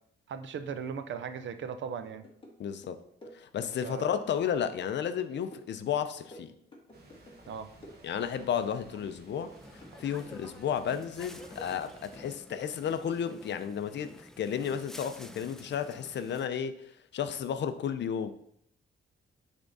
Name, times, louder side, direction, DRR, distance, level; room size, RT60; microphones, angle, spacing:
voice 1, 0.3-2.3 3.8-4.0 7.5-7.7, right 6 dB, 65° right, 9 dB, 0.7 m, -38 dB
sound 1, 2.0-2.6 2.8-4.5 4.7-7.5 7.8-8.8 9.0-10.6 10.9-11.9 12.1-13.7 14.1-14.2, left 1 dB, 25° left, 1.5 m, -52 dB
voice 2, 2.6-3.0 3.3-6.5 8.0-16.8 17.1-18.3, left 8 dB, 60° left, 10 dB, 0.6 m, -33 dB
sound 2, 6.9-12.3, right 2 dB, 50° right, 1.5 m, -55 dB
sound 3, 9.5-16.5, left 1 dB, ahead, 0.3 m, -50 dB
10.0 x 3.6 x 4.1 m, 0.69 s
wide cardioid pair, 150°, 21 cm